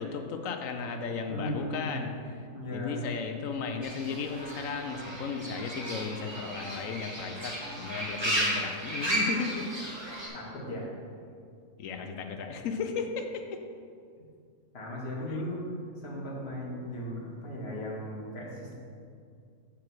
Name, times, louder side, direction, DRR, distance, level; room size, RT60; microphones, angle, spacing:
voice 1, 0.0-2.1 2.4-9.7 10.0-10.2 11.8-13.6 15.3-15.4, left 5 dB, 70° left, 5 dB, 1.0 m, -35 dB
voice 2, 1.3-2.0 2.5-3.1 10.3-10.9 14.7-15.6 16.0-18.7, equal, 45° left, -3 dB, 1.7 m, -37 dB
Fowl / Bird, 3.8-10.3, right 1 dB, 20° right, 1.4 m, -34 dB
7.1 x 4.8 x 6.2 m, 2.3 s
omnidirectional pair, 1.5 m